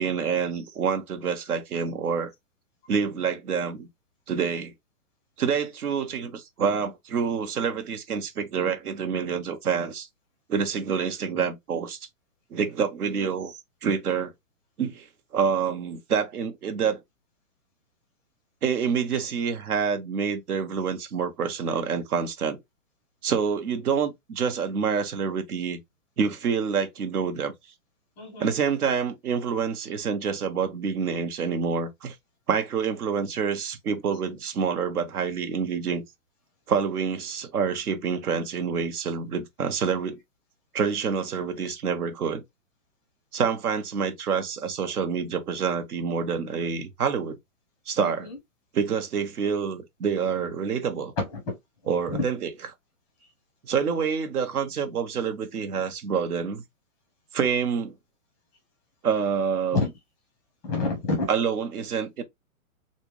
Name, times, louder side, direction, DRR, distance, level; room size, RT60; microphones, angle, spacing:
voice 1, 0.0-2.3 2.9-3.9 4.3-4.7 5.4-10.1 10.5-12.0 12.5-13.5 13.8-14.3 14.8-15.1 15.3-17.0 18.6-22.6 23.2-25.8 26.2-27.5 28.4-32.1 32.5-36.0 36.7-40.2 40.7-42.4 43.3-47.4 47.9-48.3 48.7-51.1 51.9-52.5 53.7-56.6 57.3-57.9 59.0-59.9 61.3-62.2, right 6 dB, 80° right, 1.3 m, -27 dB
voice 2, 28.2-28.5 48.2-48.4 51.2-51.6 52.1-52.2 53.2-53.3 59.7-59.9 60.6-61.3, left 3 dB, 10° left, 0.6 m, -28 dB
3.3 x 2.6 x 3.0 m
hypercardioid pair, 165°, 44 cm